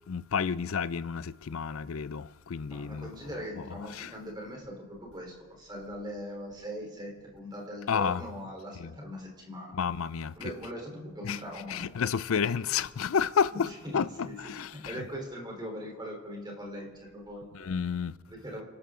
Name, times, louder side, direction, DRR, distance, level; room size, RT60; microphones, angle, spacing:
voice 1, 0.1-3.1 3.6-3.7 3.9-4.1 7.9-8.2 8.8-8.9 9.7-10.5 11.2-11.4 11.7-13.7 13.9-15.0 17.5-18.2, left 6 dB, 80° left, 0.5 m, -30 dB
voice 2, 2.7-9.7 10.4-11.8 13.8-14.4 14.7-17.5 18.3-18.6, equal, 20° right, 3.8 m, -41 dB
29.5 x 12.5 x 3.8 m
head